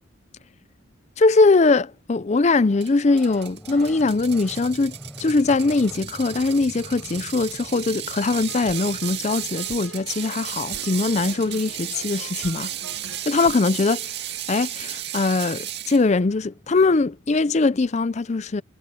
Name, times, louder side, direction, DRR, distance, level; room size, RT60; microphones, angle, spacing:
voice 1, 1.2-12.7 13.3-14.1 14.5-18.6, left 3 dB, 35° left, 0.5 m, -21 dB
sound 1, 2.6-13.0 15.1-15.2 15.3-17.1, equal, 5° left, 4.7 m, -46 dB
Ratchet pawl, 2.8-16.0, right 12 dB, 55° right, 2.4 m, -34 dB
sound 2, 8.5-14.8, right 3 dB, 85° right, 1.0 m, -45 dB
head